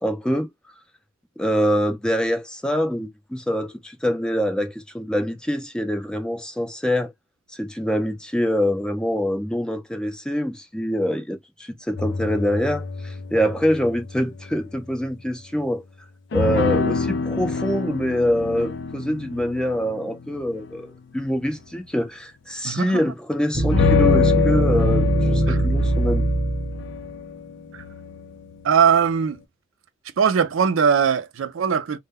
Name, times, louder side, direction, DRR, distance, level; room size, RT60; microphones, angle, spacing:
voice 1, 0.0-0.5 1.4-7.1 7.5-15.8 16.3-26.3, equal, 5° left, 0.4 m, -25 dB
sound 1, 12.0-14.5 16.3-20.8 23.7-29.2, left 5 dB, 65° left, 0.4 m, -26 dB
voice 2, 22.6-23.1 25.5-25.6 28.6-29.4 30.2-32.0, right 7 dB, 80° right, 0.4 m, -20 dB
sound 2, 23.5-27.0, right 2 dB, 25° right, 0.7 m, -21 dB
2.2 x 2.1 x 3.4 m
head